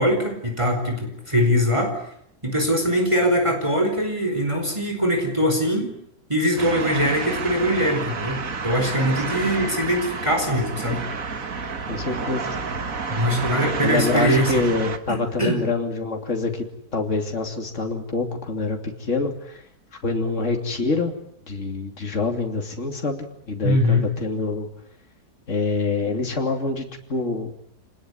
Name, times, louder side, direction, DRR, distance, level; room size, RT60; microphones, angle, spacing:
voice 1, 0.0-2.0 2.4-6.0 6.3-11.0 13.1-14.6 15.1-15.6 23.6-24.1, equal, 20° right, 4 dB, 4.7 m, -22 dB
sound 1, 6.6-15.0, right 4 dB, 60° right, 2.1 m, -30 dB
voice 2, 11.9-12.5 13.1-13.3 13.8-16.7 16.9-19.6 20.0-21.1 21.5-24.7 25.5-27.5, left 3 dB, 50° left, 3 dB, 3.2 m, -26 dB
27.0 x 20.0 x 9.5 m, 0.72 s
omnidirectional pair, 1.6 m